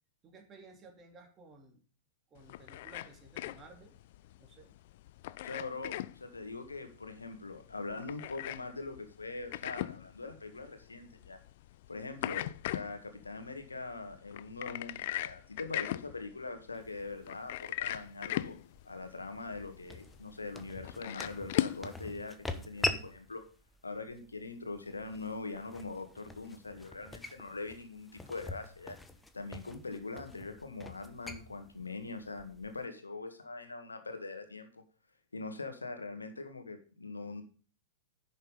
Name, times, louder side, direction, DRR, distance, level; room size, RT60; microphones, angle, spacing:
voice 1, 0.2-1.8 2.3-3.9 4.3-4.7, right 3 dB, 25° right, 3 dB, 2.9 m, -55 dB
sound 1, 2.4-21.9, left 14 dB, 55° left, 0.4 m, -40 dB
voice 2, 5.4-11.4 11.9-18.6 18.9-23.4 23.8-29.0 29.3-34.8 35.3-37.4, left 3 dB, 80° left, 7 dB, 1.9 m, -42 dB
sound 2, 16.7-32.8, left 2 dB, 10° left, 1.1 m, -44 dB
10.5 x 6.6 x 5.3 m, 0.39 s
figure-of-eight pair, 95°, 0 cm